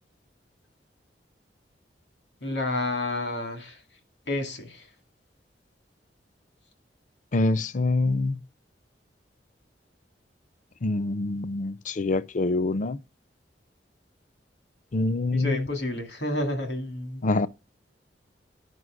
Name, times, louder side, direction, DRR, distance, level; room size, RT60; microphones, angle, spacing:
voice 1, 2.4-3.8 4.3-4.9 15.3-17.2, left 2 dB, 90° left, 2.2 m, -30 dB
voice 2, 7.3-8.4 10.8-13.0 14.9-15.7 17.2-17.5, left 2 dB, 45° left, 0.5 m, -25 dB
9.6 x 5.6 x 6.3 m
head